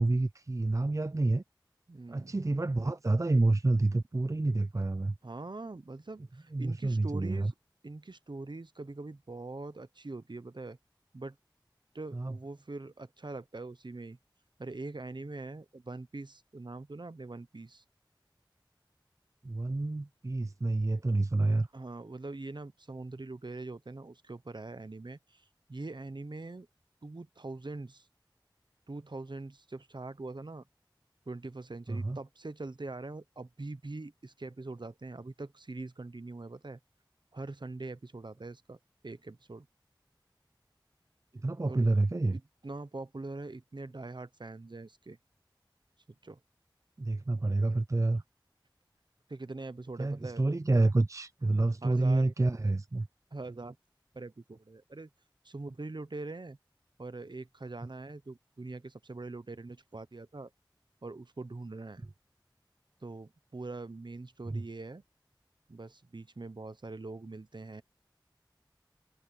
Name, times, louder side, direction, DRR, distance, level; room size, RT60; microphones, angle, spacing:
voice 1, 0.0-1.4 2.1-5.1 6.5-7.5 12.1-12.3 19.4-21.7 31.9-32.2 41.4-42.4 47.0-48.2 50.0-53.1 64.5-64.6, right 2 dB, 40° right, 0.5 m, -28 dB
voice 2, 1.9-2.4 5.2-7.5 7.8-10.8 11.1-11.4 11.9-14.2 14.6-17.8 21.7-26.7 27.0-28.1 28.9-30.6 31.3-36.8 37.3-39.7 41.7-41.8 42.3-45.2 46.2-46.4 49.3-50.5 51.4-52.3 53.3-53.8 54.1-55.1 55.4-56.6 57.0-60.5 61.0-62.0 63.0-65.0 65.7-67.8, right 2 dB, 65° right, 0.9 m, -43 dB
wide cardioid pair, 45°, 8 cm